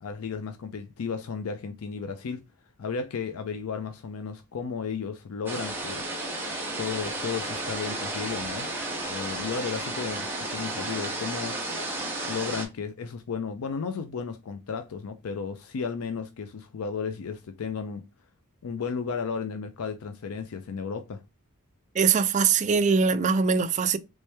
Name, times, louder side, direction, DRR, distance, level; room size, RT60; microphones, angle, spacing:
voice 1, 0.0-2.4 2.8-6.1 6.8-8.7 9.1-11.6 12.2-18.0 18.6-21.2, left 5 dB, 75° left, 0.4 m, -34 dB
sound 1, 5.5-12.7, right 2 dB, 10° right, 0.9 m, -33 dB
voice 2, 22.0-24.0, right 5 dB, 35° right, 0.3 m, -22 dB
3.2 x 3.0 x 3.2 m
head